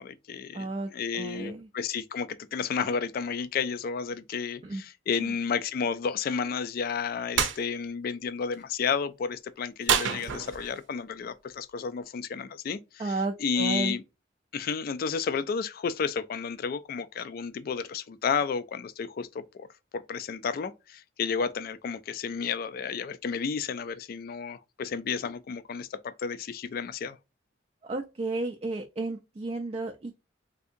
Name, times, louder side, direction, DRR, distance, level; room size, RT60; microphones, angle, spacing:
voice 1, 0.0-13.1 13.4-14.0 14.5-19.7 19.9-27.2, left 6 dB, 50° left, 0.3 m, -32 dB
voice 2, 0.5-1.7 4.6-4.8 5.2-5.3 13.0-14.0 27.8-30.1, right 2 dB, 30° right, 0.3 m, -33 dB
sound 1, 7.4-7.6 9.9-10.8, right 7 dB, 75° right, 0.6 m, -27 dB
3.5 x 2.7 x 2.5 m
head